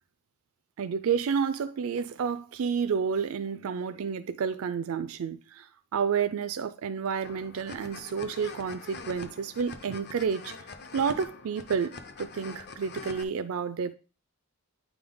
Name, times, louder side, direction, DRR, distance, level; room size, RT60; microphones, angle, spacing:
voice 1, 0.8-5.7 5.9-10.5 10.9-13.9, right 6 dB, 70° right, 0.4 m, -30 dB
sound 1, 7.2-13.2, left 4 dB, 50° left, 0.7 m, -44 dB
9.3 x 3.6 x 3.8 m
head